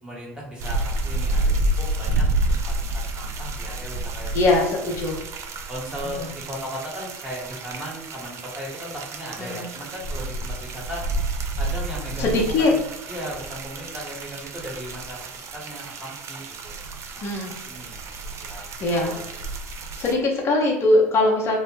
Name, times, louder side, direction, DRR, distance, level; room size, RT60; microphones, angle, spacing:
voice 1, 0.0-5.2 5.7-11.0 11.6-16.8 17.1-17.4 17.6-18.0 18.4-18.7 19.0-19.3, equal, 10° right, -3 dB, 1.1 m, -37 dB
sound 1, 0.6-20.1, right 2 dB, 45° right, 0.4 m, -29 dB
voice 2, 4.3-5.1 9.4-9.7 12.2-12.7 17.2-17.5 18.8-19.1 20.0-21.6, left 2 dB, 40° left, -1 dB, 0.6 m, -21 dB
2.0 x 2.0 x 3.1 m, 0.92 s
hypercardioid pair, 70°, 7 cm